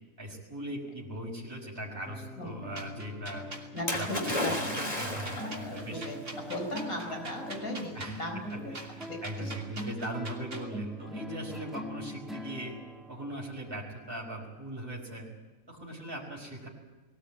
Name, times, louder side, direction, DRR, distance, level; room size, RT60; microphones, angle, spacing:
voice 1, 0.2-3.5 4.0-6.0 7.9-8.2 8.5-12.7 13.1-15.3 15.7-16.7, right 1 dB, 15° right, -3 dB, 5.1 m, -40 dB
sound 1, 2.1-14.8, equal, ahead, 2.0 m, -43 dB
sound 2, 2.8-10.7, right 2 dB, 60° right, 3.5 m, -44 dB
voice 2, 3.7-8.7 9.1-9.2 9.4-9.5, left 1 dB, 85° left, 4 dB, 5.0 m, -38 dB
Splash splatter, 3.9-5.7 6.6-6.7, left 1 dB, 25° left, 3.7 m, -33 dB
22.0 x 18.5 x 8.8 m, 1.2 s
omnidirectional pair, 1.5 m